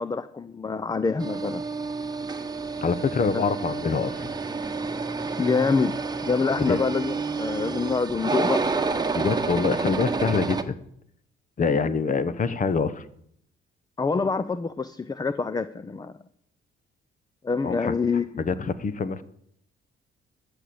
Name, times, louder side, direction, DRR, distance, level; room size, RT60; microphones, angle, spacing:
voice 1, 0.0-1.6 3.3-3.4 5.4-6.0 6.2-8.7 14.0-16.1 17.4-18.4, left 4 dB, 20° left, 14 dB, 0.5 m, -26 dB
sound 1, 1.2-10.6, right 4 dB, 20° right, 1.1 m, -29 dB
voice 2, 2.8-4.3 6.5-6.8 9.1-10.7 11.6-13.0 17.6-17.9 18.4-19.2, left 5 dB, 40° left, 16 dB, 1.0 m, -25 dB
13.0 x 6.9 x 7.8 m, 0.70 s
cardioid pair, 90°, 20 cm